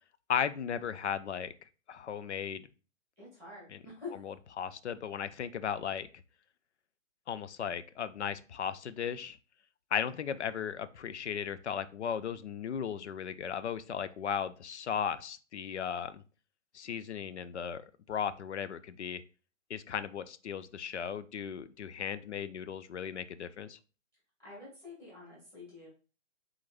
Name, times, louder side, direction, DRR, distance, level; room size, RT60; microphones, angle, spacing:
voice 1, 0.3-1.5 1.9-2.7 3.7-3.8 4.2-6.1 7.3-9.4 9.9-16.2 16.7-19.2 19.7-23.8, left 8 dB, 65° left, 13 dB, 0.5 m, -36 dB
voice 2, 3.2-4.2 24.4-25.9, left 4 dB, 5° left, -7 dB, 2.2 m, -47 dB
4.5 x 3.9 x 2.5 m, 0.35 s
figure-of-eight pair, 130°, 38 cm